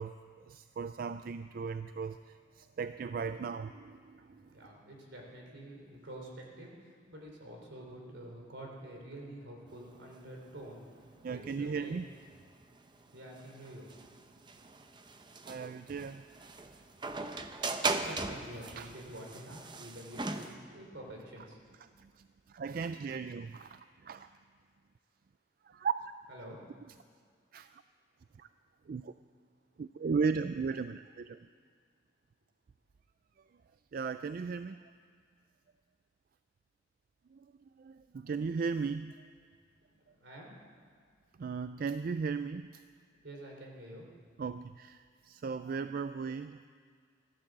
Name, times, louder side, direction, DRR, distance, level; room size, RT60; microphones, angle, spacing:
voice 1, 0.0-4.5 11.2-12.0 15.5-16.2 18.8-18.9 22.0-24.3 25.7-26.1 27.5-27.8 28.4-28.5 28.9-29.1 29.8-31.4 33.9-34.9 37.3-37.5 37.8-39.1 41.4-42.8 44.4-46.6, right 5 dB, 50° right, 12 dB, 0.3 m, -37 dB
voice 2, 4.3-11.9 13.1-13.9 18.0-21.6 26.3-26.6 40.2-40.5 43.2-44.1, right 1 dB, 75° right, 0 dB, 3.5 m, -48 dB
sound 1, 9.7-20.6, right 3 dB, 25° right, 0.7 m, -39 dB
15.5 x 11.5 x 7.4 m, 2.1 s
head